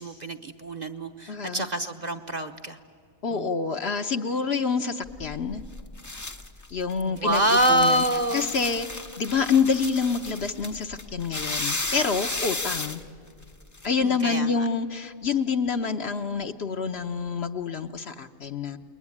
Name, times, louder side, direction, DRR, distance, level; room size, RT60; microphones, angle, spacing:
voice 1, 0.0-2.8 3.3-3.5 7.1-8.5 14.0-14.7, right 1 dB, 35° right, 6 dB, 1.0 m, -26 dB
voice 2, 1.3-1.6 3.2-5.6 6.7-8.0 8.3-13.0 13.8-18.8, left 5 dB, 55° left, 6 dB, 1.1 m, -27 dB
sound 1, 5.0-13.9, left 2 dB, 20° left, 0.6 m, -34 dB
28.5 x 21.0 x 9.8 m, 2.1 s
omnidirectional pair, 1.4 m